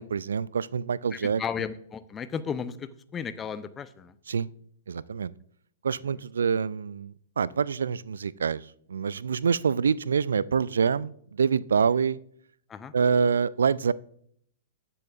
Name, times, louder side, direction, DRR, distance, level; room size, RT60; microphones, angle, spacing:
voice 1, 0.0-1.4 4.3-4.5 4.9-5.3 5.8-12.2 12.9-13.9, right 6 dB, 70° right, 21 dB, 0.3 m, -26 dB
voice 2, 1.1-4.1 12.7-12.9, left 7 dB, 20° left, 13 dB, 0.7 m, -34 dB
19.0 x 7.0 x 2.5 m, 0.66 s
figure-of-eight pair, 105°, 0 cm